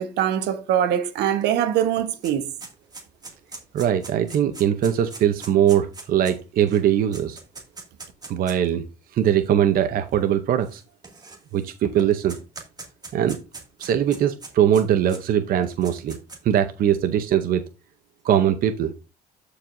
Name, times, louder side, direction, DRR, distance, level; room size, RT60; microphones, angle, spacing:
voice 1, 0.0-2.5, right 10 dB, 80° right, 1.2 m, -23 dB
sound 1, 1.4-1.5 1.8-8.7 9.5-9.6 10.6-11.7 12.0-15.2 15.6-16.6, right 3 dB, 25° right, 2.2 m, -41 dB
voice 2, 3.7-7.4 8.3-8.8 9.1-10.8 11.5-12.4 13.1-13.4 13.8-16.2 16.4-17.6 18.2-18.9, right 10 dB, 60° right, 0.7 m, -21 dB
13.5 x 4.8 x 2.6 m
cardioid pair, 110°, 17 cm